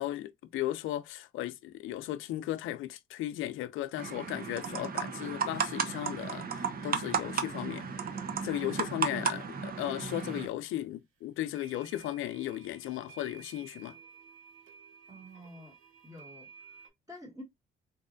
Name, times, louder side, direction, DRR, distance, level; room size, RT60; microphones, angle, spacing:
voice 1, 0.0-14.0, left 13 dB, 85° left, 0.5 m, -36 dB
sound 1, 4.0-10.5, right 6 dB, 50° right, 0.7 m, -34 dB
sound 2, 10.5-10.6 11.5-16.9, right 6 dB, 80° right, 1.0 m, -54 dB
voice 2, 15.1-15.7 16.0-17.4, left 1 dB, 15° right, 1.3 m, -49 dB
4.0 x 2.4 x 2.5 m
cardioid pair, 90°, 20 cm